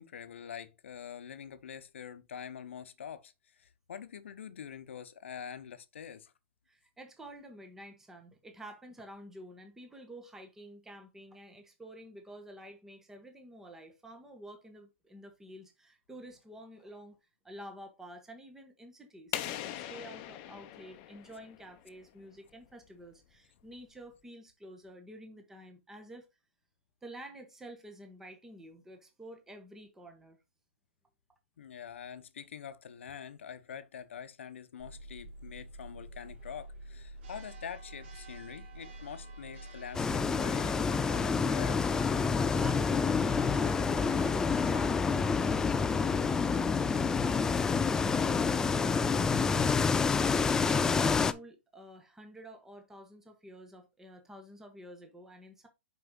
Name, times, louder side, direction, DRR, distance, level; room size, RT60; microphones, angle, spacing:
voice 1, 0.0-3.3 3.6-6.3 31.6-41.9, left 8 dB, 80° left, 0.9 m, -45 dB
voice 2, 6.7-17.2 17.4-26.2 27.0-30.4 42.6-55.7, right 1 dB, 5° right, 1.2 m, -50 dB
sound 1, 19.3-22.0, left 12 dB, 35° left, 0.8 m, -40 dB
Church bell, 34.8-51.1, right 1 dB, 65° right, 2.7 m, -48 dB
sound 2, 39.9-51.3, left 5 dB, 10° left, 0.3 m, -28 dB
5.8 x 5.0 x 3.7 m
hypercardioid pair, 140°, 6 cm